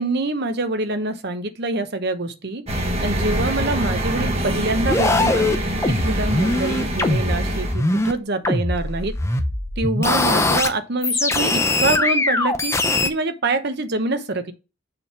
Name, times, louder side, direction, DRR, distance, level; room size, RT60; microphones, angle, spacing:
voice 1, 0.0-2.7 3.0-5.5 6.0-9.1 9.8-12.8 13.0-14.5, right 2 dB, 50° right, 0.8 m, -25 dB
sound 1, 2.7-7.7, right 1 dB, 30° right, 1.4 m, -25 dB
sound 2, 4.7-8.1 8.4-10.7 11.0-13.1, left 2 dB, 15° left, 0.6 m, -21 dB
6.8 x 3.5 x 5.8 m
head